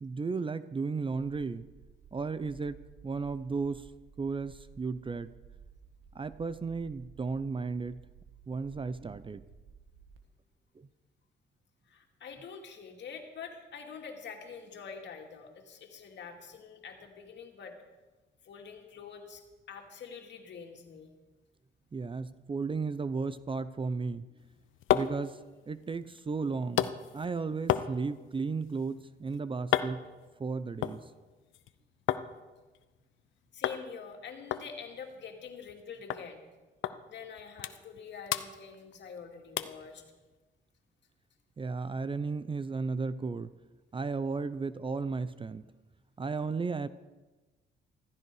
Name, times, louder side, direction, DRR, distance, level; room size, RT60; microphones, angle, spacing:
voice 1, 0.0-1.6 2.1-2.8 3.0-3.9 4.2-5.3 6.1-8.0 8.5-9.4 10.8-10.9 21.9-24.3 24.9-25.4 25.7-30.0 30.4-31.0 41.6-43.5 43.9-45.6 46.2-46.9, right 4 dB, 25° right, 15 dB, 0.6 m, -34 dB
sound 1, 1.1-10.2, right 7 dB, 85° right, 1.8 m, -55 dB
voice 2, 11.9-17.7 18.4-19.4 19.7-21.1 33.5-36.4 37.1-40.0, left 6 dB, 65° left, 3 dB, 2.5 m, -46 dB
sound 2, 24.4-32.3 32.6-33.3 33.6-33.8 34.1-34.2 34.5-35.8 36.1-36.3 36.8-37.0 37.3-38.0 38.3-39.2 39.6-39.8 40.3-40.4, left 11 dB, 80° left, 0.7 m, -34 dB
15.0 x 14.0 x 4.8 m, 1.2 s
cardioid pair, 90°, 20 cm